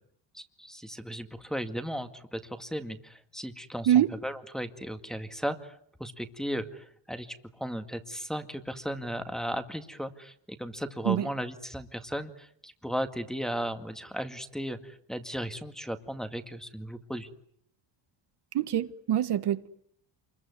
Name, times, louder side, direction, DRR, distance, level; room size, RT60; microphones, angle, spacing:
voice 1, 0.3-17.3, equal, ahead, 1.9 m, -36 dB
voice 2, 18.5-19.7, right 11 dB, 60° right, 1.6 m, -25 dB
28.0 x 22.0 x 9.6 m
cardioid pair, 135°, 45 cm